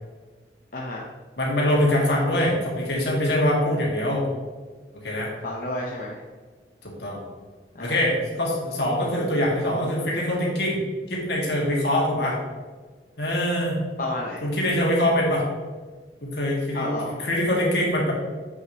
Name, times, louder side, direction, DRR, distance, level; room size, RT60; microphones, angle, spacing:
voice 1, 0.7-1.1 5.4-6.2 7.7-8.0 14.0-14.4 16.7-17.2, left 1 dB, 50° left, -3 dB, 0.9 m, -31 dB
voice 2, 1.4-4.3 5.0-5.3 6.8-7.2 7.8-12.4 13.2-13.8 14.4-15.4 16.2-16.9 17.2-18.1, left 1 dB, 70° left, -3 dB, 2.2 m, -23 dB
7.9 x 6.3 x 3.1 m, 1.4 s
head